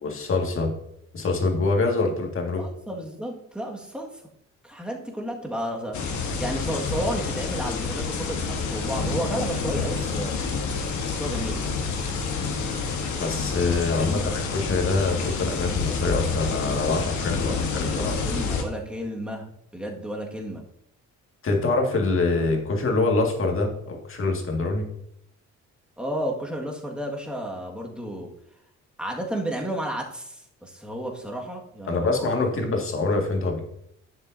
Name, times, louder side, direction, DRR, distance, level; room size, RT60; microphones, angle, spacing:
voice 1, 0.0-0.7 1.1-2.7 13.2-18.1 21.4-24.9 31.9-33.6, left 3 dB, 45° left, 2 dB, 2.0 m, -25 dB
voice 2, 2.6-4.2 4.6-10.4 11.1-11.7 14.0-14.3 17.4-19.5 19.7-20.6 26.0-28.3 29.0-32.7, right 1 dB, 5° right, -1 dB, 1.7 m, -32 dB
sound 1, 5.9-18.6, left 4 dB, 70° left, 1.4 m, -28 dB
11.0 x 6.9 x 2.7 m, 0.73 s
cardioid pair, 90°, 30 cm